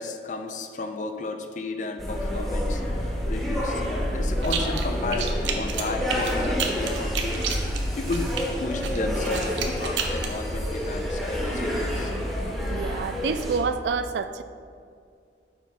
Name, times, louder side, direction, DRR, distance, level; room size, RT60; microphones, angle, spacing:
voice 1, 0.0-7.6 7.9-8.3 8.6-12.1, left 3 dB, 45° left, 6 dB, 0.5 m, -33 dB
sound 1, 2.0-13.6, equal, ahead, 1.0 m, -28 dB
sound 2, 4.4-4.9 5.1-8.4 8.8-10.3, right 7 dB, 90° right, 0.7 m, -30 dB
voice 2, 12.7-14.4, right 5 dB, 65° right, 11 dB, 0.3 m, -28 dB
6.8 x 4.6 x 4.1 m, 2.3 s
head